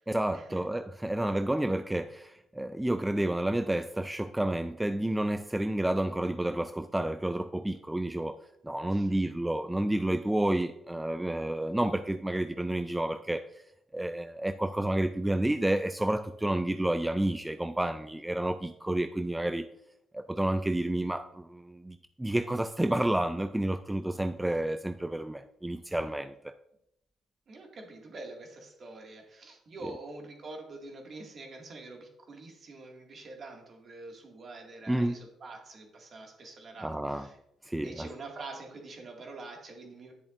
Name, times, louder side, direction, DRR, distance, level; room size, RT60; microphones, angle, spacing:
voice 1, 0.1-8.4 8.6-13.5 13.9-19.6 20.1-26.5 34.9-35.2 36.8-37.2 37.7-38.1, right 1 dB, 10° right, 9 dB, 0.3 m, -30 dB
voice 2, 8.9-9.2 27.5-37.4 37.8-40.1, right 2 dB, 50° right, 1 dB, 2.1 m, -45 dB
10.0 x 7.1 x 2.6 m, 0.80 s
cardioid pair, 90°, 0 cm